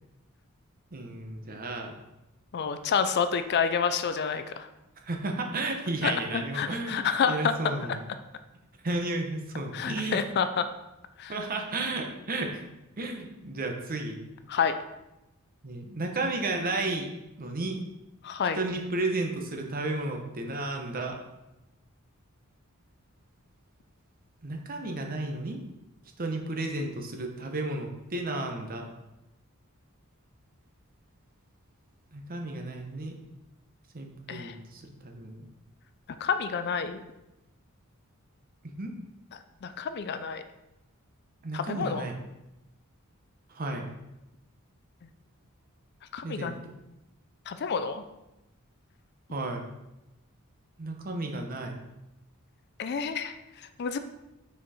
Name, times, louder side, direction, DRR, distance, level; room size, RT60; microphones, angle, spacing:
voice 1, 0.9-1.9 5.0-8.0 8.8-10.2 11.3-12.6 13.0-14.2 15.6-17.1 17.4-17.8 18.5-21.2 24.4-25.6 26.2-28.9 32.1-33.1 33.9-35.5 38.8-38.9 41.4-42.2 43.5-43.9 46.2-46.7 49.3-49.7 50.8-51.8, right 2 dB, 40° right, 3 dB, 0.8 m, -33 dB
voice 2, 2.5-4.7 6.0-7.5 9.7-10.6 11.2-11.3 14.5-14.7 18.2-18.6 34.3-34.5 36.2-37.0 39.6-40.4 41.5-42.0 46.1-46.6 47.5-48.0 52.8-53.3 53.8-54.0, left 6 dB, 50° left, 10 dB, 0.4 m, -28 dB
6.1 x 4.4 x 4.1 m, 0.95 s
head